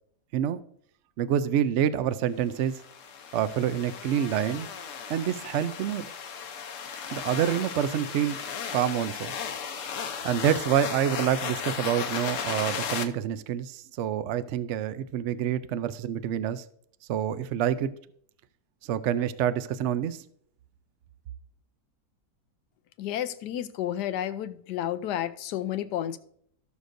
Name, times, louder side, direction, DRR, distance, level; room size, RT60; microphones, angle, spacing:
voice 1, 1.2-2.8 3.3-4.7 5.1-6.1 7.1-8.4 8.7-9.3 10.2-16.6 17.1-17.9 18.8-20.2, right 10 dB, 70° right, 0.7 m, -27 dB
sound 1, 2.6-13.0, left 7 dB, 60° left, 1.0 m, -35 dB
voice 2, 23.0-26.2, left 11 dB, 90° left, 1.2 m, -31 dB
16.5 x 6.4 x 2.6 m
omnidirectional pair, 1.7 m